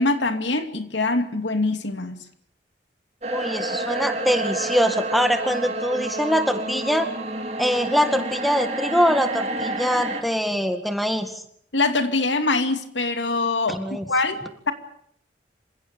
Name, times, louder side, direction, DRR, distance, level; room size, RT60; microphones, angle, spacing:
voice 1, 0.0-2.3 11.7-14.7, left 3 dB, 85° left, 8 dB, 2.5 m, -24 dB
sound 1, 3.2-10.2, right 2 dB, 35° right, 2.8 m, -29 dB
voice 2, 3.3-7.1 7.6-11.3 13.7-14.0, equal, ahead, 7 dB, 1.9 m, -23 dB
27.0 x 16.5 x 9.0 m, 0.66 s
head